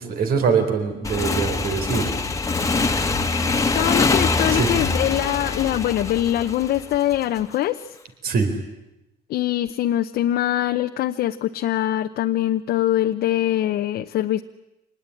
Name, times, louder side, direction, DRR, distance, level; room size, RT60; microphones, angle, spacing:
voice 1, 0.0-2.1 4.5-4.7 8.2-8.5, right 5 dB, 60° right, 7 dB, 4.3 m, -23 dB
Motorcycle / Engine, 1.0-7.4, left 3 dB, 20° left, 1.8 m, -23 dB
voice 2, 3.7-8.0 9.3-14.4, left 13 dB, 70° left, 6 dB, 0.9 m, -23 dB
26.0 x 19.5 x 9.9 m, 0.94 s
cardioid pair, 110°, 17 cm